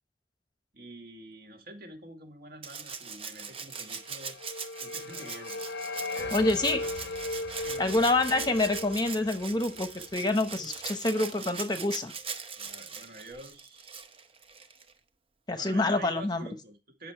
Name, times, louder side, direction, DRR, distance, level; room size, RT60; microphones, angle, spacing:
voice 1, 0.7-4.4 4.8-5.6 6.1-7.1 7.6-7.9 12.6-14.0 15.5-17.1, right 1 dB, 55° right, 4 dB, 2.1 m, -47 dB
Rattle (instrument), 2.6-14.9 16.3-16.4, right 5 dB, 30° right, 0.8 m, -41 dB
sound 1, 3.9-11.0, left 2 dB, 60° left, 0.5 m, -38 dB
voice 2, 6.3-6.8 7.8-12.1 15.5-16.5, left 2 dB, 20° left, 8 dB, 0.9 m, -27 dB
10.0 x 6.2 x 4.6 m, 0.29 s
head